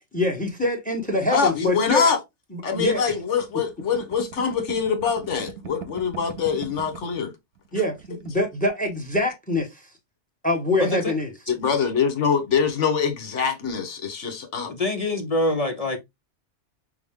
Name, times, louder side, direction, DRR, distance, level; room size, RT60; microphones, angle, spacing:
voice 1, 0.1-2.1 2.5-3.0 7.7-9.7 10.4-11.3, left 1 dB, 10° left, 0.9 m, -24 dB
voice 2, 1.3-2.2 2.6-7.3 11.5-14.7, left 6 dB, 80° left, 1.4 m, -24 dB
sound 1, 2.7-7.2 7.6-7.7 7.9-8.5, right 7 dB, 85° right, 1.0 m, -41 dB
voice 3, 10.8-11.1 14.7-16.0, left 2 dB, 45° left, 0.5 m, -25 dB
5.6 x 2.0 x 3.5 m
omnidirectional pair, 1.2 m